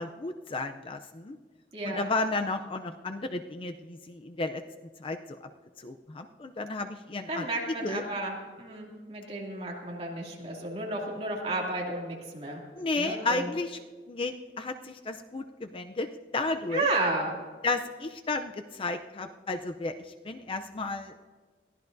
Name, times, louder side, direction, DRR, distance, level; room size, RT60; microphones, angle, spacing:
voice 1, 0.0-1.4 1.8-4.6 5.0-5.4 5.8-7.5 7.8-8.0 12.8-13.8 14.1-16.9 17.6-21.2, left 3 dB, 30° left, 7 dB, 0.5 m, -33 dB
voice 2, 1.7-2.0 7.3-12.6 13.0-13.5 16.7-17.3, right 2 dB, 35° right, -2 dB, 2.6 m, -32 dB
22.5 x 15.0 x 2.6 m, 1.5 s
head